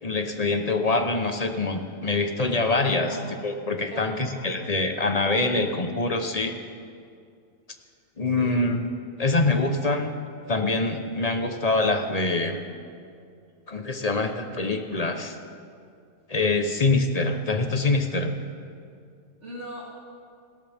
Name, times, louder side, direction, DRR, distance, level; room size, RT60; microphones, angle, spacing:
voice 1, 0.0-3.2 3.4-6.6 8.2-8.8 9.2-10.1 10.5-12.6 13.7-15.4 16.3-18.3, left 3 dB, 35° left, 6 dB, 1.0 m, -24 dB
voice 2, 3.0-3.4 3.9-4.6 8.4-8.6 19.4-19.9, right 1 dB, 75° right, -6 dB, 3.7 m, -39 dB
29.5 x 12.5 x 3.6 m, 2.3 s
omnidirectional pair, 1.2 m